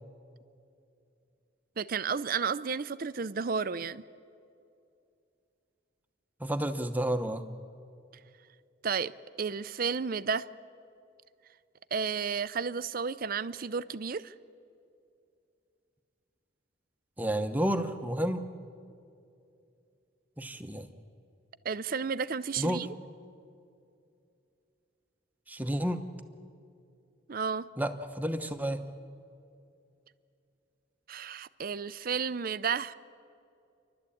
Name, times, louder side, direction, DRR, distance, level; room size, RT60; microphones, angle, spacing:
voice 1, 1.8-4.0 8.8-9.1 9.4-10.5 11.9-14.3 21.6-22.9 27.3-27.7 31.1-32.9, right 6 dB, 50° right, 15 dB, 0.5 m, -32 dB
voice 2, 6.4-7.4 17.2-18.4 20.4-20.9 22.6-22.8 25.5-26.0 27.8-28.8, right 1 dB, 10° right, 7 dB, 1.0 m, -31 dB
29.5 x 12.5 x 8.6 m, 2.5 s
head